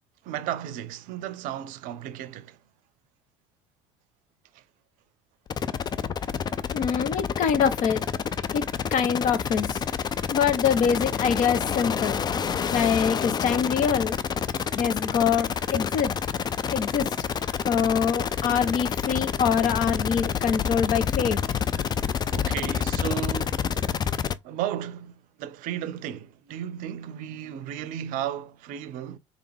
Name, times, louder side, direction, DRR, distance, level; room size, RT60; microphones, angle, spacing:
voice 1, 0.2-2.6 4.5-4.6 22.3-23.7 24.4-29.2, right 11 dB, 55° right, 0.6 m, -34 dB
sound 1, 5.5-24.3, left 7 dB, 25° left, 0.4 m, -28 dB
voice 2, 6.7-8.0 8.5-8.6 8.9-9.8 10.3-12.2 12.7-14.2 14.7-16.1 16.7-17.1 17.6-21.4, left 7 dB, 50° left, 0.9 m, -24 dB
3.7 x 3.4 x 3.4 m
hypercardioid pair, 65°, 16 cm